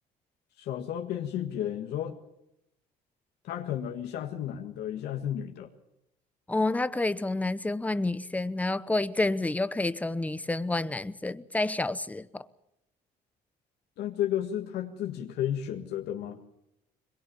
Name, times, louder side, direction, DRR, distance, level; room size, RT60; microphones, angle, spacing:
voice 1, 0.6-2.2 3.4-5.7 14.0-16.4, left 10 dB, 75° left, 1.8 m, -32 dB
voice 2, 6.5-12.5, left 2 dB, 10° left, 0.9 m, -29 dB
22.5 x 21.5 x 7.0 m
cardioid pair, 110°, 17 cm